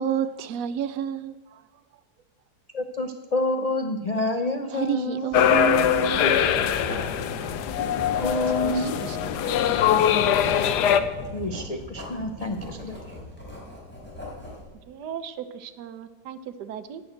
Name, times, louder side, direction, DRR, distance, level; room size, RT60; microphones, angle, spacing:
voice 1, 0.0-1.6 4.7-6.6 8.6-9.4, right 10 dB, 70° right, 1.0 m, -30 dB
voice 2, 2.7-5.3 7.7-7.9 8.2-9.0 11.3-13.0, left 2 dB, 70° left, 0.3 m, -28 dB
sound 1, 5.3-11.0, left 9 dB, 90° left, 1.3 m, -22 dB
Writing, 5.3-14.7, left 1 dB, 5° left, 3.6 m, -38 dB
voice 3, 14.9-17.0, right 8 dB, 90° right, 1.4 m, -37 dB
10.0 x 8.6 x 7.9 m
omnidirectional pair, 1.7 m